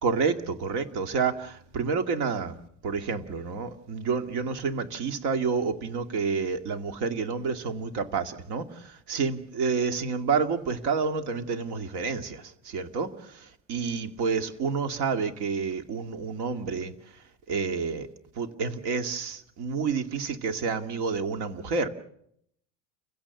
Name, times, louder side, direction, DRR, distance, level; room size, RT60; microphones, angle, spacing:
voice 1, 0.0-2.6 2.8-16.9 17.5-18.1 18.4-21.9, right 5 dB, 55° right, 8 dB, 2.2 m, -29 dB
29.5 x 16.5 x 7.1 m, 0.72 s
cardioid pair, 155°, 35 cm